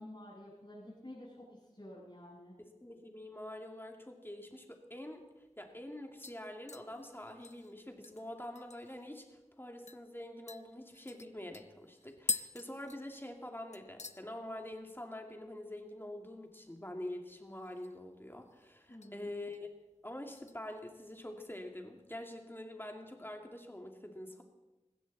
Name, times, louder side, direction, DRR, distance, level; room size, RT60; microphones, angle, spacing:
voice 1, 0.0-1.5 1.7-2.6 18.9-19.3, left 1 dB, 45° left, -11 dB, 7.2 m, -50 dB
voice 2, 2.6-5.2 5.6-19.7 20.0-24.4, left 1 dB, 20° left, 3 dB, 2.5 m, -46 dB
sound 1, 5.1-5.2 5.6-5.9 6.2-9.1 9.4-9.5 9.9-10.0 10.5-13.5 13.7-14.2 14.6-15.0 15.2-15.3 17.4-18.1 18.4-19.1 19.5-19.8 20.4-21.3 21.6-21.7, left 4 dB, 70° left, 0.6 m, -44 dB
20.5 x 16.0 x 4.2 m, 1.0 s
wide cardioid pair, 45°, 12 cm